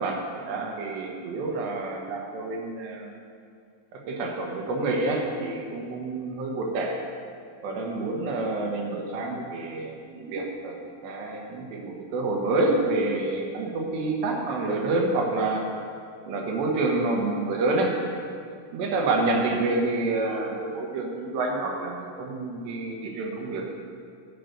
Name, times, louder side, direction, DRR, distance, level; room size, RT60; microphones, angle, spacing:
voice 1, 0.0-3.1 4.1-7.0 7.6-10.8 11.0-15.7 16.3-17.9 18.7-23.7, right 2 dB, 90° right, 0 dB, 3.5 m, -28 dB
11.0 x 6.7 x 8.3 m, 2.3 s
omnidirectional pair, 4.9 m